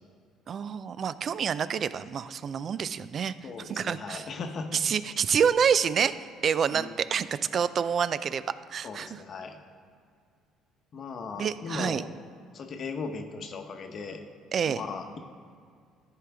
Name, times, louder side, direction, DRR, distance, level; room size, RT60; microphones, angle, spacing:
voice 1, 0.5-3.3 3.7-4.2 4.7-6.2 6.4-8.4 8.7-9.2 11.4-12.0 14.5-14.8, right 7 dB, 50° right, 15 dB, 0.4 m, -27 dB
voice 2, 3.4-4.8 6.7-7.0 8.8-9.6 10.9-12.1 12.5-14.2 14.7-15.2, left 4 dB, 50° left, 6 dB, 0.9 m, -38 dB
13.5 x 5.0 x 3.4 m, 2.2 s
supercardioid pair, 75°, 0 cm